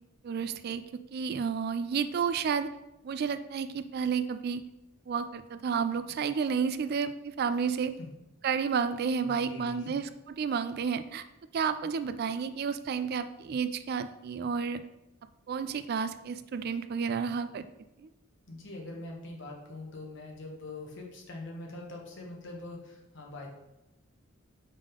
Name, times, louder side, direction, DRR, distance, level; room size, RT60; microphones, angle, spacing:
voice 1, 0.2-0.8 1.1-2.7 3.0-4.6 5.1-7.9 8.4-10.1 10.4-11.2 11.5-14.8 15.5-17.6, right 6 dB, 50° right, 11 dB, 0.3 m, -31 dB
voice 2, 9.2-9.9 17.1-17.3 18.5-23.5, left 2 dB, 60° left, 0 dB, 1.3 m, -43 dB
5.2 x 3.7 x 5.1 m, 0.93 s
head